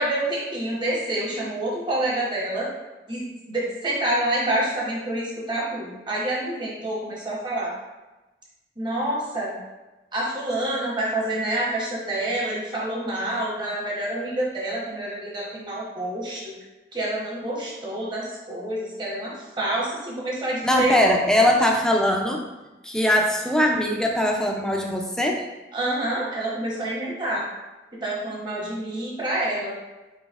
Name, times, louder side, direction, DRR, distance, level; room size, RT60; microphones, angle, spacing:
voice 1, 0.0-2.7 3.1-7.7 8.8-9.6 10.1-16.5 16.9-21.0 25.7-27.4 28.0-29.8, right 1 dB, 25° right, -5 dB, 1.0 m, -27 dB
voice 2, 20.6-22.4 22.8-25.4, left 1 dB, 5° left, 0 dB, 0.4 m, -21 dB
4.2 x 3.9 x 2.4 m, 1.1 s
head